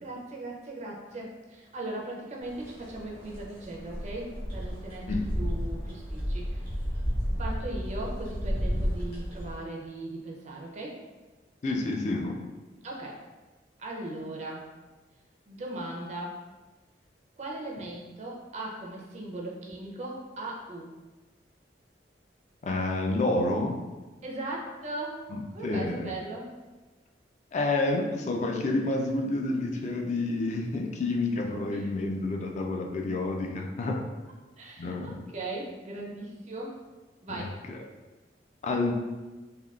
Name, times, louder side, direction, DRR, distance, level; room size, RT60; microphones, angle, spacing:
voice 1, 0.0-6.7 7.4-11.0 12.8-13.2 13.8-14.6 15.5-16.4 17.4-20.9 24.2-25.2 25.5-26.5 31.7-31.9 34.6-36.7 37.2-37.6, right 2 dB, 40° right, -1 dB, 0.4 m, -38 dB
sound 1, 2.4-9.6, equal, 60° left, 0.9 m, -32 dB
voice 2, 11.6-12.4 22.6-23.8 25.3-26.1 27.5-34.1 34.8-35.2 37.3-37.8 38.6-38.9, left 2 dB, 40° left, 2 dB, 0.3 m, -29 dB
3.5 x 2.2 x 2.3 m, 1.2 s
head